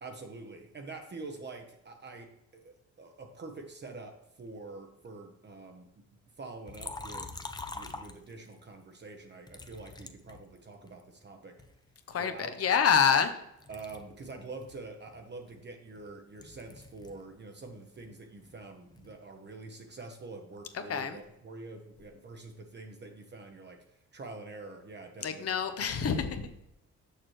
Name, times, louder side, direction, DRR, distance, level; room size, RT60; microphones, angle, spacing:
voice 1, 0.0-6.1 6.4-7.5 7.7-11.6 12.2-12.5 13.7-23.8 24.1-25.6 26.0-26.3, right 3 dB, 35° right, 4 dB, 0.9 m, -46 dB
Liquid, 6.7-8.6 9.5-11.0 11.6-13.3 13.6-17.3 17.6-19.2, left 3 dB, 15° left, 0.6 m, -46 dB
voice 2, 12.6-13.3 20.9-21.2 25.2-26.7, left 7 dB, 50° left, 8 dB, 0.8 m, -26 dB
6.5 x 6.0 x 3.1 m, 0.83 s
cardioid pair, 90°, 30 cm